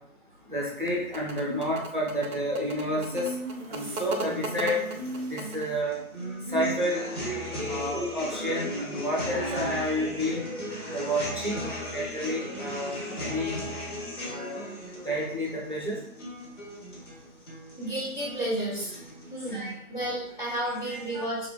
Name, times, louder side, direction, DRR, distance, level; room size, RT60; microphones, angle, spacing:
voice 1, 0.5-3.3 3.7-4.8 5.3-6.0 6.5-7.0 7.7-10.5 10.9-13.6 14.3-14.7 15.0-16.0 19.5-19.7 20.8-21.3, equal, 35° right, -5 dB, 0.5 m, -30 dB
sound 1, 0.6-5.8, right 2 dB, 85° right, 0.7 m, -38 dB
Singing, 2.8-10.1, right 1 dB, 15° left, 1.0 m, -37 dB
sound 2, 3.7-19.7, left 1 dB, 55° left, 1.3 m, -38 dB
voice 2, 17.8-18.9 19.3-21.5, right 1 dB, 35° left, -6 dB, 0.6 m, -32 dB
3.2 x 2.4 x 2.3 m, 0.74 s
figure-of-eight pair, 160°, 44 cm